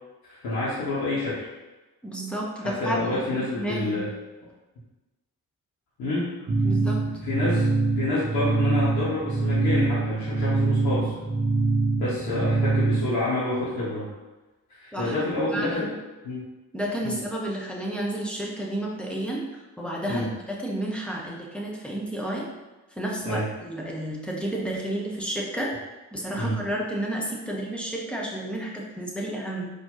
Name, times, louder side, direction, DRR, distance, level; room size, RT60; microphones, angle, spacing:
voice 1, 0.2-1.5 2.6-4.1 6.0-6.3 7.2-7.7 7.9-11.2 12.0-14.1 14.7-15.9 16.2-16.4 17.0-17.1 20.1-20.3 23.2-23.5 26.4-26.6, left 2 dB, 55° left, -8 dB, 1.2 m, -28 dB
voice 2, 2.0-3.2 3.6-4.0 6.6-7.0 14.9-15.9 16.7-22.5 22.9-25.7 26.1-29.7, right 1 dB, ahead, -3 dB, 1.1 m, -31 dB
sound 1, 6.5-13.2, right 3 dB, 30° right, 0.8 m, -24 dB
4.4 x 2.9 x 3.9 m, 1.1 s
figure-of-eight pair, 40°, 45 cm